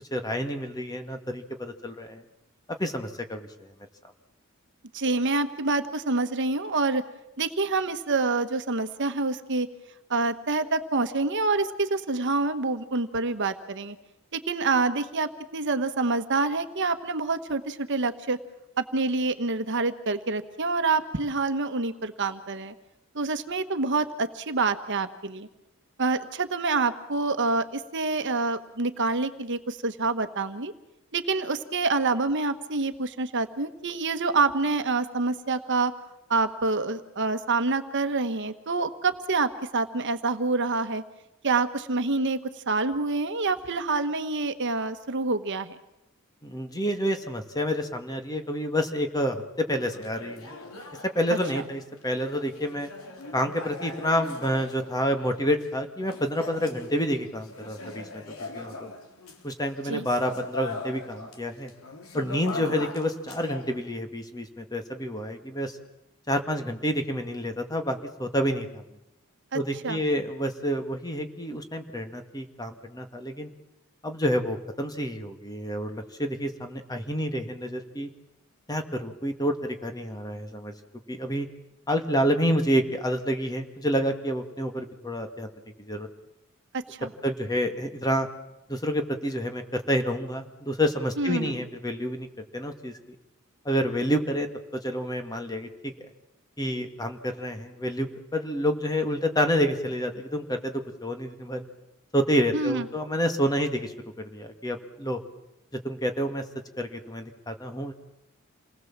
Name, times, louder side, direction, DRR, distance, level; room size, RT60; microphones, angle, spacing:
voice 1, 0.1-2.2 2.8-3.7 46.4-50.5 51.2-52.9 53.3-58.9 59.4-61.7 62.1-65.7 66.3-68.8 69.5-73.5 74.0-78.1 78.7-80.7 81.1-81.5 81.9-85.5 85.8-86.1 87.2-88.3 88.7-92.3 92.5-93.0 93.7-94.5 94.8-95.7 96.6-101.6 102.1-105.2 105.8-106.4 106.8-107.9, equal, 20° left, 6 dB, 2.1 m, -28 dB
voice 2, 4.9-7.0 7.4-9.7 10.1-14.0 14.3-18.4 18.8-22.7 23.1-25.5 26.0-30.7 31.1-35.9 36.3-41.0 41.4-42.4 42.7-45.8 59.9-60.0 69.5-70.0 86.7-87.1 91.2-91.5 102.5-102.8, right 3 dB, 55° right, 10 dB, 1.3 m, -27 dB
sound 1, 49.9-55.7 56.0-61.4 61.7-63.8, left 3 dB, 75° left, 3.9 m, -41 dB
28.5 x 19.5 x 7.4 m, 0.90 s
head